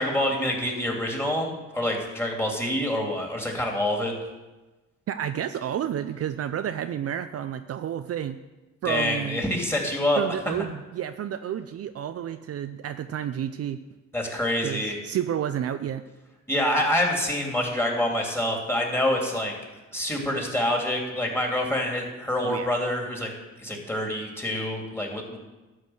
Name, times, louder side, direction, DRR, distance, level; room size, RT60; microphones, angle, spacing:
voice 1, 0.0-4.1 8.8-10.2 14.1-15.0 16.5-19.5 19.9-23.3 23.6-25.4, left 1 dB, 10° left, 0 dB, 2.7 m, -26 dB
voice 2, 5.1-8.4 8.8-9.5 10.2-13.8 14.6-16.0 22.4-22.7, right 10 dB, 55° right, 9 dB, 0.5 m, -30 dB
12.0 x 4.8 x 7.8 m, 1.1 s
cardioid pair, 90°, 30 cm